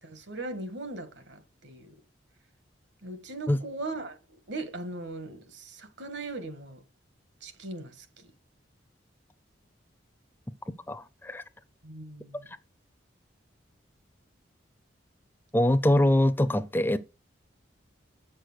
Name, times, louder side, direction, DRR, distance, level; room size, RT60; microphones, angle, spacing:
voice 1, 0.0-1.9 3.0-4.2 4.5-6.8 7.4-8.3 11.8-12.5, right 2 dB, 70° right, 1.7 m, -39 dB
voice 2, 10.9-11.4 12.5-12.6 15.5-17.0, left 1 dB, 10° left, 0.4 m, -23 dB
8.7 x 6.5 x 6.2 m
head